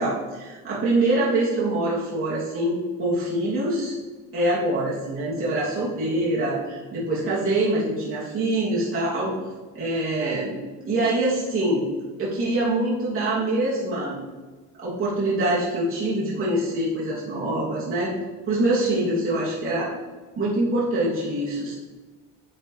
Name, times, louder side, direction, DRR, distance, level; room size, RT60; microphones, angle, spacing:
voice 1, 0.0-4.0 4.3-9.3 9.7-10.5 10.8-11.8 12.2-14.2 14.7-18.1 18.5-19.9 20.4-21.7, right 1 dB, 45° right, -7 dB, 3.0 m, -24 dB
10.5 x 8.3 x 3.4 m, 1.3 s
cardioid pair, 125°, 31 cm